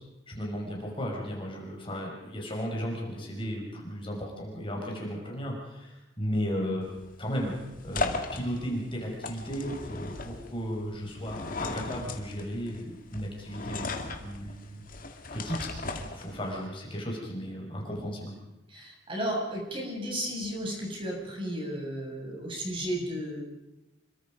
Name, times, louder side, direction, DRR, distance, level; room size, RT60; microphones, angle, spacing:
voice 1, 0.3-6.9 7.2-7.5 7.8-14.8 15.3-15.7 16.1-18.3, equal, 25° left, -1 dB, 5.6 m, -35 dB
sound 1, 6.8-16.7, left 3 dB, 45° left, 2.3 m, -37 dB
voice 2, 18.7-23.4, equal, 25° right, 0 dB, 7.0 m, -33 dB
27.5 x 23.5 x 5.3 m, 1.0 s
head